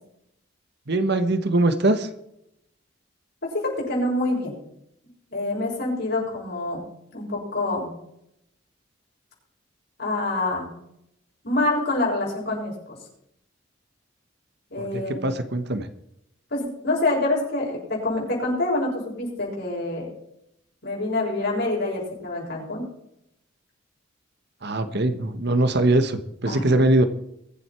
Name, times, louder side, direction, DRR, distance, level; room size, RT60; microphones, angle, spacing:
voice 1, 0.9-2.1 14.8-15.9 24.6-27.1, right 2 dB, 55° right, 10 dB, 1.4 m, -22 dB
voice 2, 3.4-4.5 5.3-6.8 7.1-7.9 10.0-10.7 11.4-13.0 14.7-15.3 16.5-20.1 20.8-22.8 26.5-26.7, left 2 dB, 55° left, -3 dB, 7.2 m, -26 dB
23.5 x 8.0 x 4.6 m, 0.78 s
head